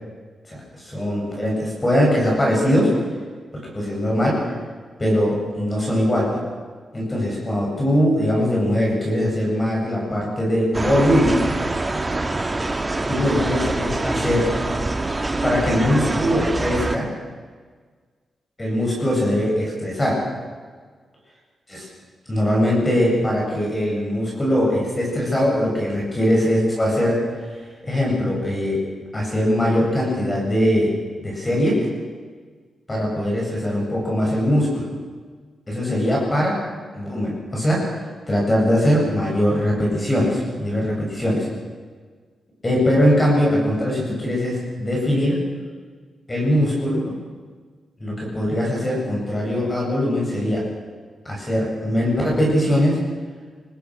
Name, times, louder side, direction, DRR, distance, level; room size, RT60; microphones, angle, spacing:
voice 1, 0.5-2.9 3.7-4.5 5.0-6.3 6.9-11.4 13.1-14.5 15.4-17.1 18.6-20.2 21.7-21.9 22.3-27.2 27.8-28.8 29.1-30.9 31.2-31.7 32.9-34.9 35.7-36.6 36.9-37.9 38.3-41.5 42.6-45.4 46.3-47.0 48.0-50.6 51.3-53.0, equal, 15° left, -3 dB, 7.4 m, -21 dB
sound 1, 10.7-17.0, right 2 dB, 15° right, 1.4 m, -24 dB
26.0 x 19.5 x 6.4 m, 1.5 s
wide cardioid pair, 160°, 0 cm